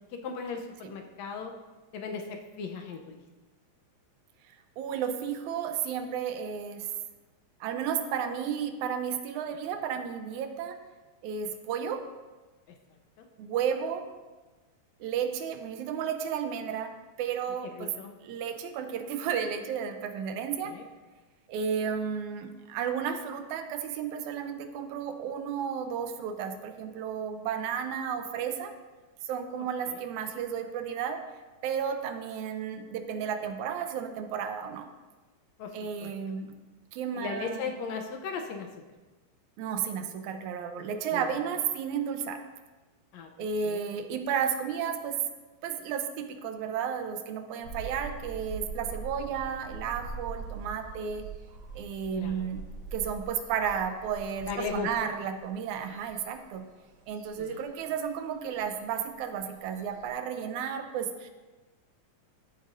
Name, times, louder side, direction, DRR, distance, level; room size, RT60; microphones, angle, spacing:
voice 1, 0.0-1.5 1.9-3.2 12.7-12.8 13.2-13.3 17.7-18.1 20.6-20.9 29.9-30.0 35.6-36.1 37.1-38.7 40.8-41.3 43.1-43.3 43.6-43.8 52.1-52.5 54.5-54.9 57.4-57.6, left 5 dB, 75° left, 4 dB, 1.9 m, -37 dB
voice 2, 4.5-6.9 7.6-10.8 11.2-12.0 13.4-14.1 15.0-17.9 18.2-20.7 21.5-28.7 29.2-31.2 31.6-34.9 35.7-36.5 36.9-37.7 39.6-42.4 43.4-45.2 45.6-51.3 51.7-52.6 52.9-56.7 57.1-61.3, right 7 dB, 80° right, 7 dB, 2.1 m, -33 dB
sound 1, 47.6-60.1, right 4 dB, 55° right, 4.0 m, -43 dB
14.5 x 8.2 x 2.6 m, 1.2 s
omnidirectional pair, 3.4 m